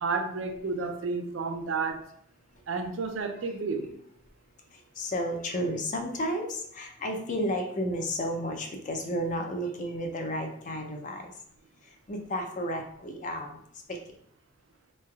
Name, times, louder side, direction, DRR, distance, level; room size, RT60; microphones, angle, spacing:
voice 1, 0.0-2.1 2.7-3.9, right 4 dB, 65° right, 6 dB, 0.4 m, -31 dB
voice 2, 4.7-11.3 11.8-13.6 13.9-14.0, equal, 35° left, 3 dB, 0.5 m, -32 dB
4.0 x 3.2 x 2.3 m, 0.67 s
head